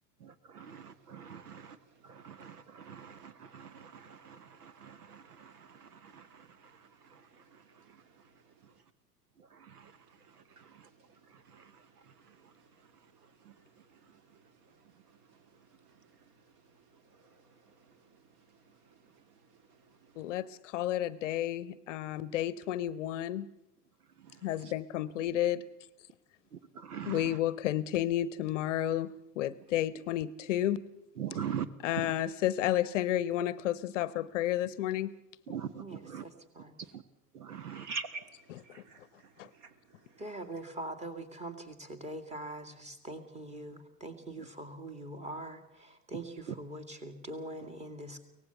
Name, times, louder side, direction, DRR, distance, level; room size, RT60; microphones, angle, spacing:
voice 1, 0.2-1.8 2.0-8.0 9.4-10.9 11.3-12.5 13.4-13.5 24.2-24.4 26.5-27.4 31.2-31.7 31.9-32.1 35.5-36.2 36.9-37.0 37.3-37.9 44.4-44.5 46.5-46.6, right 9 dB, 70° right, 1.1 m, -44 dB
voice 2, 20.2-23.5 24.4-25.6 27.1-30.8 31.8-35.1 39.4-39.5, left 12 dB, 50° left, 0.9 m, -31 dB
voice 3, 35.8-36.8 40.2-48.2, right 1 dB, 15° right, 2.3 m, -43 dB
voice 4, 37.7-38.2 38.6-39.7, right 4 dB, 35° right, 2.2 m, -42 dB
23.5 x 18.5 x 6.9 m
figure-of-eight pair, 90°, 48 cm